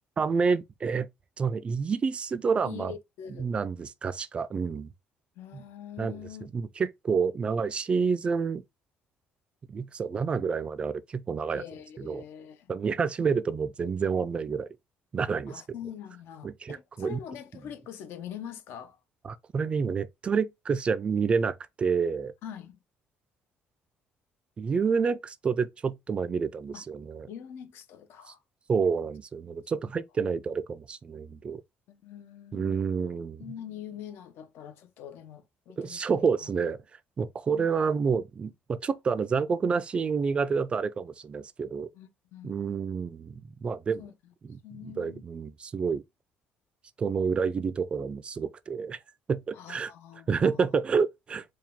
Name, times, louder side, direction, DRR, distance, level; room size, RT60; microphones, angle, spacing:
voice 1, 0.2-1.1 1.4-2.9 3.4-4.9 5.5-5.6 6.0-6.1 6.5-8.6 9.7-11.6 12.0-12.2 12.7-14.7 15.1-15.6 16.4-17.2 19.3-22.3 24.6-27.3 28.7-31.6 32.5-33.4 35.8-36.8 37.2-41.9 42.4-44.0 44.5-44.6 45.0-46.0 47.0-49.0 49.3-49.9 50.3-51.4, right 5 dB, 30° right, 0.3 m, -28 dB
voice 2, 2.6-3.5 5.4-6.7 11.5-12.7 15.5-19.0 22.4-22.8 26.7-26.8 27.3-28.4 31.9-32.8 33.4-36.5 37.5-37.9 41.9-42.5 44.0-44.1 44.6-45.2 49.5-50.7, left 9 dB, 70° left, 0.7 m, -44 dB
4.6 x 2.3 x 3.5 m
cardioid pair, 145°, 4 cm